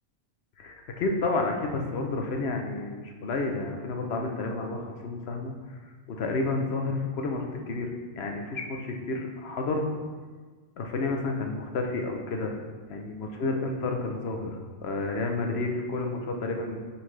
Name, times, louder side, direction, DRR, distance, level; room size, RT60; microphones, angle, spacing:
voice 1, 0.6-5.5 6.1-7.9 8.2-9.9 10.8-12.6 12.9-16.8, left 3 dB, 65° left, 2 dB, 1.0 m, -30 dB
9.5 x 4.3 x 3.2 m, 1.5 s
omnidirectional pair, 1.2 m